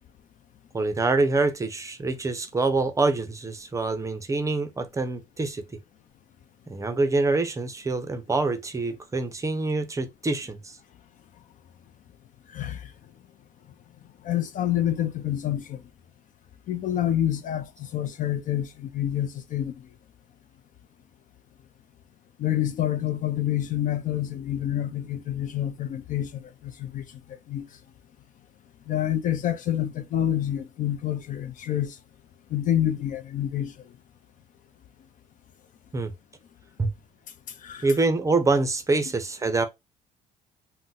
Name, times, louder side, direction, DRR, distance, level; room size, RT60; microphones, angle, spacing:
voice 1, 0.7-5.6 6.7-10.8 35.9-36.1 36.8-36.9 37.8-39.7, right 3 dB, 20° right, 0.5 m, -25 dB
voice 2, 12.5-12.9 14.2-15.8 16.7-19.9 22.4-27.0 27.5-27.7 28.9-32.0 32.5-33.7 37.6-37.9, left 11 dB, 50° left, 0.4 m, -27 dB
2.6 x 2.1 x 3.9 m
cardioid pair, 110°, 17 cm